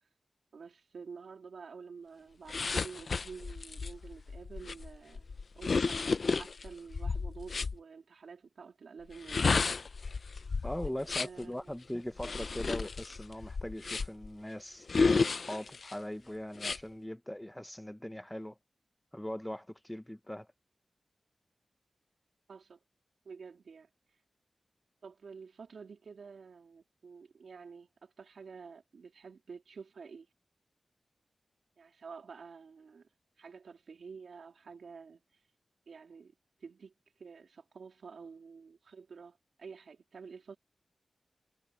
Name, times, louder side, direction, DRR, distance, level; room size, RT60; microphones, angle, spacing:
voice 1, 0.5-9.4 10.8-11.8 22.5-22.8 23.3-23.9 25.0-30.3 31.8-33.1 33.4-35.2 35.9-36.3 36.6-36.9 37.2-40.6, right 5 dB, 90° right, 3.7 m, -49 dB
sound 1, 2.5-7.8 9.1-11.4 12.2-14.3 14.9-15.9 16.6-16.8, left 4 dB, 65° left, 0.7 m, -32 dB
voice 2, 10.6-18.5 19.1-20.5, left 1 dB, 10° left, 1.0 m, -40 dB
wide cardioid pair, 70°, 0 cm